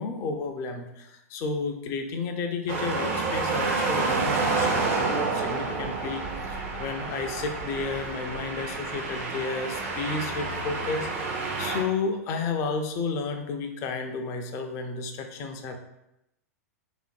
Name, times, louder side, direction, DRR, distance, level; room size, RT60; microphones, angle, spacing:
voice 1, 0.0-15.8, left 4 dB, 35° left, 5 dB, 0.3 m, -32 dB
sound 1, 2.7-11.8, right 3 dB, 55° right, 0.5 m, -29 dB
2.5 x 2.4 x 2.2 m, 0.87 s
figure-of-eight pair, 105°, 9 cm